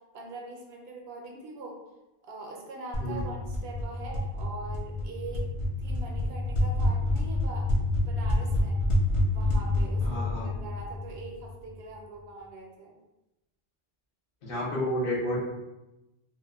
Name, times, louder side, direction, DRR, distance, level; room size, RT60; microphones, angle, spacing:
voice 1, 0.1-1.8 2.2-5.5 5.8-7.7 8.0-8.8 9.3-13.0, right 2 dB, 80° right, 0 dB, 0.8 m, -42 dB
sound 1, 2.9-11.6, left 1 dB, 45° left, 0.4 m, -28 dB
voice 2, 10.0-10.5 14.4-15.4, left 1 dB, 60° left, -5 dB, 0.9 m, -30 dB
2.8 x 2.1 x 2.3 m, 0.99 s
omnidirectional pair, 1.0 m